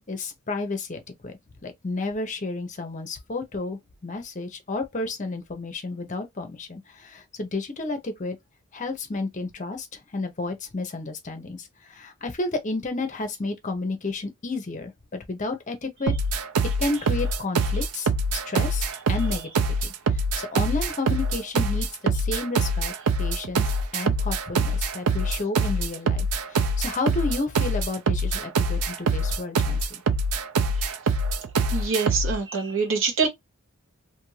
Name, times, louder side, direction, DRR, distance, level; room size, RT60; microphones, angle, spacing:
voice 1, 0.0-8.4 8.7-16.1 16.8-22.9 23.2-30.0, left 3 dB, 35° left, 0.6 m, -32 dB
sound 1, 16.1-32.4, right 2 dB, 80° right, 0.4 m, -24 dB
voice 2, 31.7-33.3, right 5 dB, 60° right, 1.1 m, -25 dB
2.6 x 2.5 x 3.1 m
head